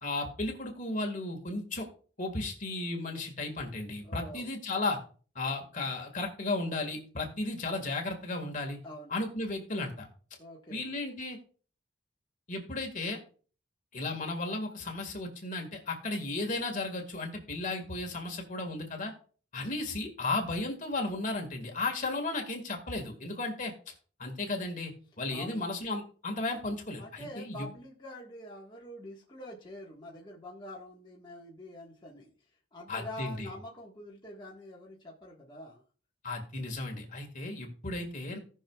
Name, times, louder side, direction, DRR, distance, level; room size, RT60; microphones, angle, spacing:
voice 1, 0.0-1.9 2.2-5.0 5.4-8.8 9.1-10.1 10.7-11.4 12.5-13.2 13.9-19.1 19.5-23.7 24.2-27.6 32.9-33.5 36.2-38.4, left 2 dB, 45° left, 3 dB, 1.9 m, -34 dB
voice 2, 4.0-4.5 8.8-9.1 10.4-10.9 25.3-25.6 27.0-32.3 32.7-35.8, left 1 dB, 25° left, -4 dB, 1.5 m, -46 dB
18.0 x 6.1 x 2.4 m, 0.41 s
head